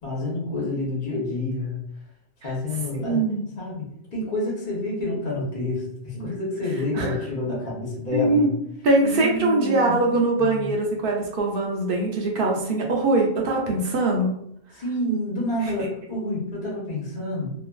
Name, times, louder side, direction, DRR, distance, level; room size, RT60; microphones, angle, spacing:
voice 1, 0.0-1.8 2.4-3.2 3.6-8.5 9.0-10.0 10.4-10.7 14.7-17.5, left 1 dB, 45° left, -4 dB, 1.0 m, -28 dB
voice 2, 2.9-3.4 7.0-7.1 8.1-8.5 8.8-14.3, right 2 dB, 60° right, -1 dB, 0.8 m, -22 dB
2.5 x 2.5 x 2.3 m, 0.73 s
omnidirectional pair, 1.2 m